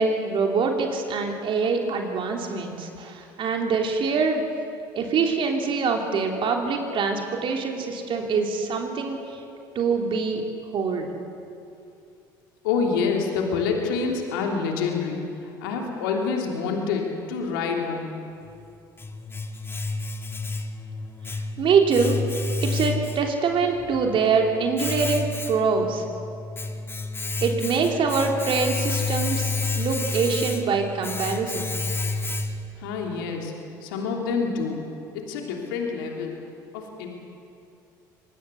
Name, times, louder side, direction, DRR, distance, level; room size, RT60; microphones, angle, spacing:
voice 1, 0.0-4.4 4.9-9.2 9.7-10.4 10.7-11.1 21.6-22.2 22.6-26.0 27.4-31.7, right 5 dB, 50° right, 2 dB, 3.1 m, -24 dB
voice 2, 12.6-15.2 15.6-18.1 32.8-33.5 33.8-34.8 35.1-36.4 36.7-37.1, left 5 dB, 75° left, 1 dB, 3.2 m, -27 dB
Domestic sounds home sounds, 18.5-32.8, left 3 dB, 20° left, 2.1 m, -30 dB
25.5 x 19.5 x 7.0 m, 2.5 s
hypercardioid pair, 65°, 11 cm